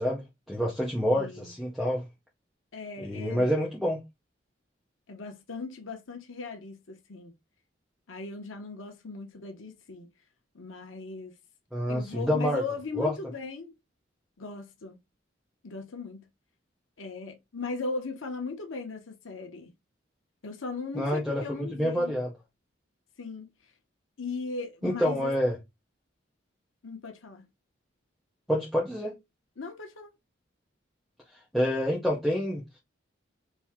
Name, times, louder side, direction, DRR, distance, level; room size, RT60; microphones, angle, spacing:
voice 1, 0.0-2.0 3.0-4.0 11.7-12.6 13.0-13.1 20.9-22.3 24.8-25.5 28.5-29.2 31.5-32.6, equal, ahead, 0.8 m, -27 dB
voice 2, 1.1-1.6 2.7-3.4 5.1-7.3 8.1-10.1 10.5-11.3 11.9-13.7 14.4-15.0 15.6-16.3 17.0-19.7 20.4-22.1 23.2-23.5 24.2-25.3 26.8-27.5 29.6-30.1, left 3 dB, 85° left, 1.0 m, -38 dB
4.5 x 2.7 x 3.6 m
head